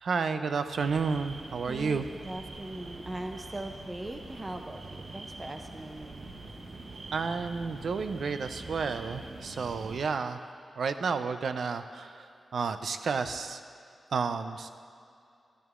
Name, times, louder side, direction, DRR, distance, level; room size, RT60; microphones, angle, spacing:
voice 1, 0.0-2.0 7.1-10.4 10.8-13.6 14.1-14.7, right 5 dB, 75° right, 9 dB, 0.4 m, -31 dB
sound 1, 0.8-10.0, right 2 dB, 50° right, 0.8 m, -44 dB
voice 2, 1.7-6.3, right 1 dB, 20° right, 5 dB, 0.5 m, -40 dB
12.5 x 12.5 x 2.4 m, 2.5 s
wide cardioid pair, 120°, 0 cm